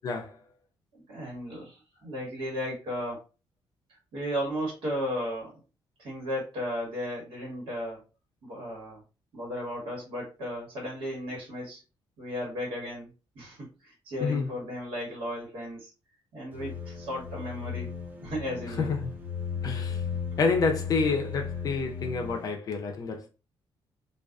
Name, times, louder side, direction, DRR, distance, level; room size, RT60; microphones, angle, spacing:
voice 1, 1.1-3.2 4.1-5.5 6.0-8.0 8.4-9.0 9.3-11.8 12.2-13.1 13.3-13.6 13.8-15.9 16.3-17.9 18.2-18.9, equal, 75° right, 1.3 m, -35 dB
sound 1, 16.5-22.5, left 7 dB, 20° right, 0.5 m, -36 dB
voice 2, 18.8-19.1 19.6-20.0 20.4-23.3, left 4 dB, 45° left, 0.4 m, -28 dB
2.4 x 2.3 x 2.2 m
cardioid pair, 160°, 9 cm